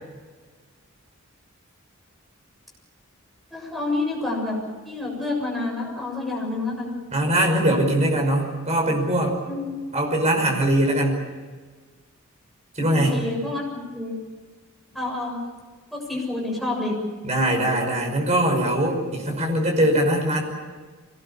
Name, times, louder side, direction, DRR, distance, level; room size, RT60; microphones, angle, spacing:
voice 1, 3.5-4.6 4.8-6.9 9.5-9.8 12.9-14.2 14.9-15.4 15.9-17.0, left 2 dB, ahead, -3 dB, 7.1 m, -28 dB
voice 2, 7.1-9.3 9.9-11.2 12.8-13.2 17.2-20.4, right 1 dB, 30° right, 2 dB, 5.6 m, -21 dB
25.0 x 19.0 x 8.8 m, 1.4 s
head